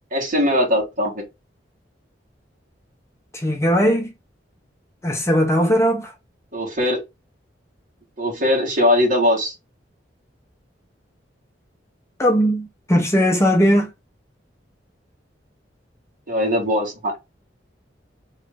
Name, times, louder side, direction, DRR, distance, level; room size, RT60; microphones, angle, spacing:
voice 1, 0.1-1.1 6.5-7.0 8.2-9.5 16.3-17.2, left 1 dB, 50° right, 1.7 m, -20 dB
voice 2, 3.3-4.1 5.0-6.1 12.2-13.9, equal, 15° left, 0.6 m, -18 dB
3.1 x 2.6 x 3.3 m
head